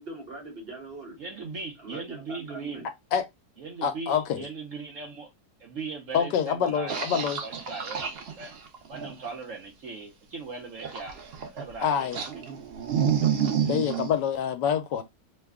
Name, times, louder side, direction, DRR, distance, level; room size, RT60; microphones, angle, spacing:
voice 1, 0.0-1.2 1.8-2.9, right 2 dB, 40° right, 1.1 m, -42 dB
voice 2, 1.2-2.8 3.6-5.3 5.6-8.6 8.9-11.2 11.5-12.3 13.6-13.8, right 4 dB, 60° right, 0.9 m, -39 dB
voice 3, 3.8-4.4 6.1-7.4 11.8-12.2 13.7-15.0, left 8 dB, 75° left, 1.2 m, -26 dB
sound 1, 6.9-9.3 10.8-11.7 12.1-14.1, right 8 dB, 80° right, 0.5 m, -29 dB
3.1 x 2.2 x 3.4 m
omnidirectional pair, 1.9 m